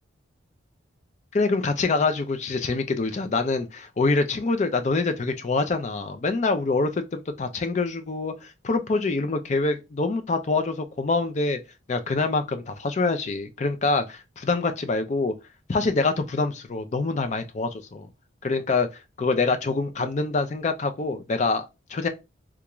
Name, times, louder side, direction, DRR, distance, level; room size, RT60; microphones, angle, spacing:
voice 1, 1.3-11.6 11.9-15.3 15.7-18.1 18.4-18.9 19.2-22.1, left 3 dB, 35° left, 0.4 m, -25 dB
3.4 x 2.4 x 2.9 m
head